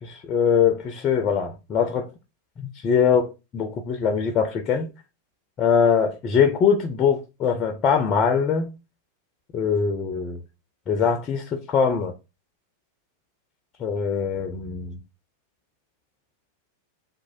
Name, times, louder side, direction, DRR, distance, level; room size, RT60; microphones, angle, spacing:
voice 1, 0.0-2.1 2.8-4.9 5.6-8.7 9.5-10.4 10.9-12.1 13.8-15.0, left 6 dB, 30° left, 0.4 m, -22 dB
3.0 x 2.1 x 2.6 m
figure-of-eight pair, 90°, 0 cm